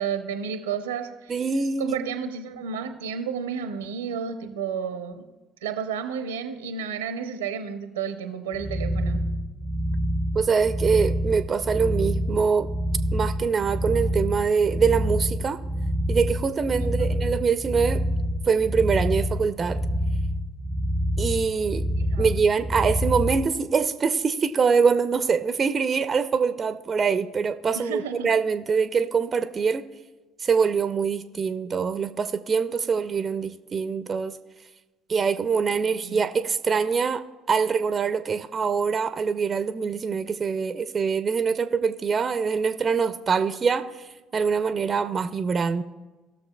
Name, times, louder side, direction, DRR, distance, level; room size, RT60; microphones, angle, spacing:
voice 1, 0.0-1.4 1.8-5.2 5.6-9.2 16.8-17.2 22.0-22.3 27.7-28.3 35.9-36.3, right 7 dB, 85° right, 8 dB, 0.7 m, -32 dB
voice 2, 1.3-2.0 10.3-12.7 13.1-15.6 16.1-18.0 18.5-19.8 21.2-21.9 22.2-29.8 30.4-34.4 35.1-45.8, right 5 dB, 40° right, 11 dB, 0.5 m, -24 dB
sound 1, 8.5-23.5, equal, 5° left, 0.6 m, -27 dB
18.5 x 6.5 x 2.3 m, 1.2 s
hypercardioid pair, 55°, 0 cm